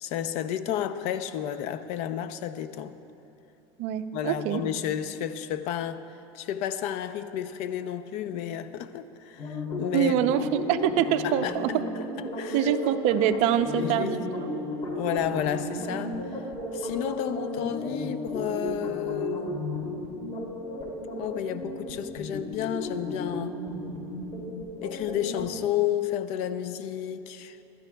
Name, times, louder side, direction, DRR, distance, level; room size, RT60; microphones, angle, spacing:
voice 1, 0.0-2.9 4.1-6.0 6.3-10.1 11.2-11.5 12.4-12.6 13.8-14.1 14.9-16.2 16.7-19.6 21.2-23.6 24.8-27.6, left 10 dB, 60° left, 11 dB, 0.6 m, -31 dB
voice 2, 3.8-4.6 9.9-11.8 12.5-14.4, right 10 dB, 55° right, 10 dB, 0.6 m, -25 dB
sound 1, 9.4-25.5, left 1 dB, 40° left, 2.7 m, -34 dB
23.5 x 12.0 x 2.3 m, 2.9 s
supercardioid pair, 135°, 13 cm